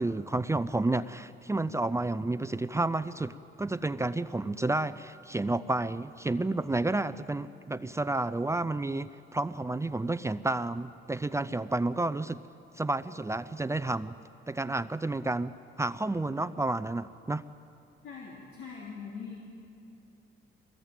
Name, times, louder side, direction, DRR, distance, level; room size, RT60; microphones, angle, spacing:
voice 1, 0.0-12.4 12.8-14.2 14.5-17.4, right 2 dB, 15° right, 13 dB, 0.6 m, -31 dB
voice 2, 18.0-19.4, left 5 dB, 85° left, -4 dB, 3.3 m, -42 dB
22.5 x 19.5 x 9.0 m, 2.8 s
cardioid pair, 90°, 20 cm